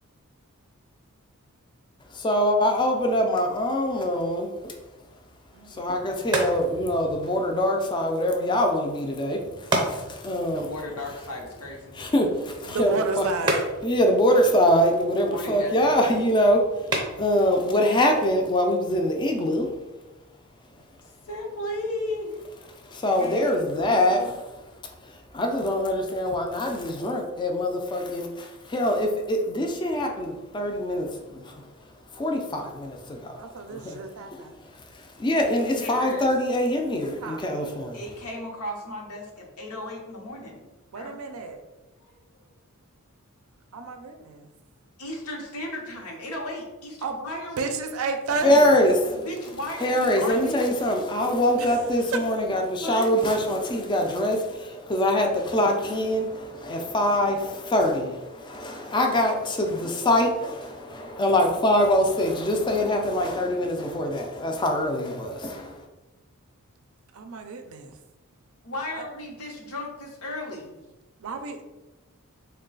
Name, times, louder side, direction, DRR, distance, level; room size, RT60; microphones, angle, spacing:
voice 1, 2.1-4.7 5.8-10.7 12.0-13.2 13.8-19.7 22.8-24.3 25.0-31.6 32.1-33.4 33.7-34.0 34.3-34.4 35.0-38.0 48.4-49.3 49.8-65.8, left 1 dB, 20° left, 3 dB, 0.4 m, -24 dB
voice 2, 5.5-6.0 9.8-9.9 12.6-13.6 33.3-34.6 37.2-37.5 40.9-41.6 43.7-44.5 47.0-47.2 47.6-48.7 51.6-51.8 52.1-52.2 67.1-68.0 68.9-69.0 71.2-71.6, right 4 dB, 65° right, 6 dB, 0.4 m, -32 dB
sound 1, 5.7-19.2, right 1 dB, 20° right, 0.6 m, -34 dB
voice 3, 10.4-11.9 15.2-16.0 21.2-22.4 23.2-24.3 35.8-36.3 37.9-40.6 40.9-41.2 42.0-42.1 45.0-47.8 49.1-50.8 52.8-53.1 68.6-70.7, left 1 dB, 85° left, -1 dB, 0.9 m, -35 dB
3.1 x 2.2 x 3.8 m, 1.1 s
head